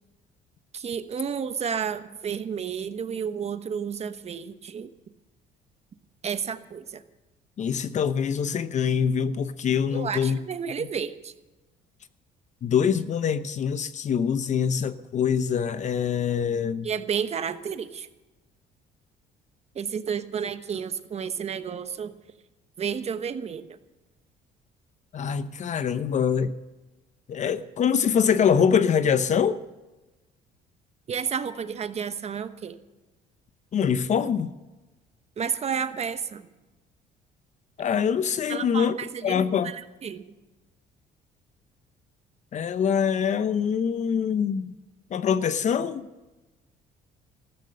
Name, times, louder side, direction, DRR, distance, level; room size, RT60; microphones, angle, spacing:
voice 1, 0.7-4.9 6.2-7.0 9.9-11.3 16.8-18.1 19.7-22.1 22.8-23.8 31.1-32.8 35.4-36.5 38.5-40.3, right 7 dB, 40° right, 1.1 m, -31 dB
voice 2, 7.6-10.4 12.6-16.9 25.1-26.5 27.3-29.6 33.7-34.5 37.8-39.0 39.2-39.7 42.5-44.7 45.1-46.1, left 7 dB, 45° left, 0.7 m, -24 dB
14.5 x 13.0 x 6.6 m
cardioid pair, 110°, 17 cm